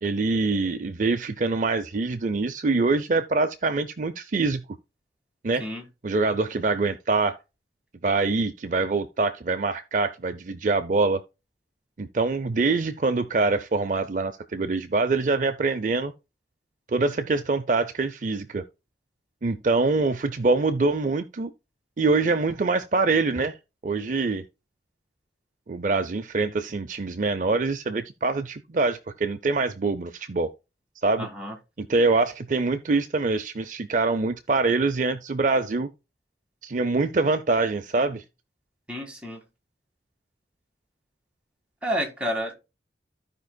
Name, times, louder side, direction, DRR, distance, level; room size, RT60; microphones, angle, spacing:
voice 1, 0.0-4.6 5.4-5.7 6.0-7.4 8.0-11.2 12.0-16.1 16.9-18.6 19.4-21.5 22.0-23.6 23.8-24.4 25.7-30.5 31.0-31.3 31.8-35.9 36.6-38.2, right 3 dB, 45° right, 0.5 m, -24 dB
voice 2, 31.2-31.5 38.9-39.4 41.8-42.5, equal, 5° right, 1.8 m, -30 dB
15.0 x 5.2 x 2.2 m
head